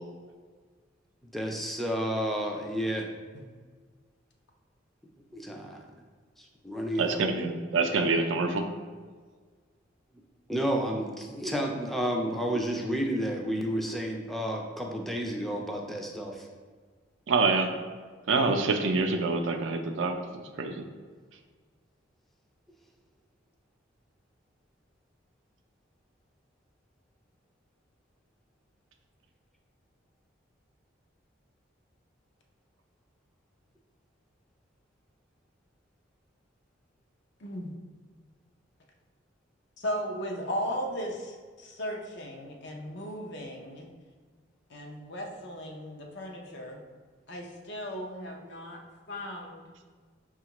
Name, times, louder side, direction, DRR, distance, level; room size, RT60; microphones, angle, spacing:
voice 1, 1.3-3.1 5.3-5.8 6.4-7.2 10.5-16.5, equal, ahead, 0 dB, 0.4 m, -31 dB
voice 2, 7.0-8.6 17.3-17.7 18.3-20.1 20.6-20.9, right 3 dB, 75° right, 5 dB, 0.4 m, -26 dB
voice 3, 37.4-37.7 39.8-43.9 44.7-46.8 47.3-48.8 49.1-49.6, equal, 65° left, 1 dB, 0.6 m, -36 dB
5.6 x 2.4 x 2.9 m, 1.5 s
head